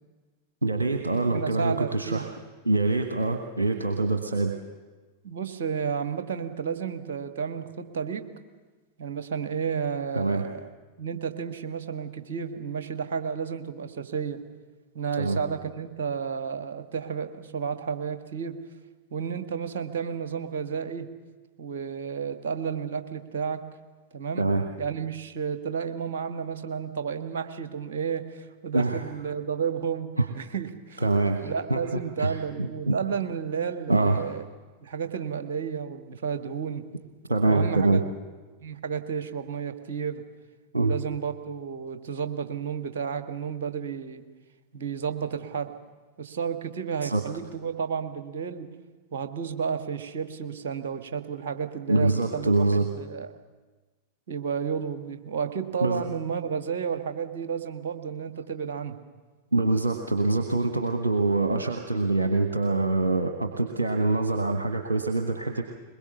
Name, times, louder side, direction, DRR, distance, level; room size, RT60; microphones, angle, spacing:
voice 1, 0.6-2.3 2.6-4.5 10.1-10.4 15.2-15.4 24.4-24.7 28.7-29.0 30.2-30.3 31.0-31.8 32.2-33.0 33.9-34.2 37.3-38.0 40.7-40.9 47.0-47.2 51.9-52.8 55.8-56.0 59.5-65.6, right 2 dB, 80° right, 4 dB, 1.2 m, -24 dB
voice 2, 1.1-2.2 5.2-8.3 9.0-10.7 11.0-14.4 14.9-18.6 19.1-21.1 21.6-23.7 24.1-24.5 24.8-30.1 30.3-31.0 31.4-34.4 34.8-36.8 37.5-38.0 38.6-40.2 40.8-44.2 44.7-45.7 46.2-48.7 49.1-53.3 54.3-59.0, right 6 dB, 60° right, 8 dB, 1.5 m, -32 dB
22.0 x 22.0 x 6.9 m, 1.3 s
figure-of-eight pair, 90°, 0 cm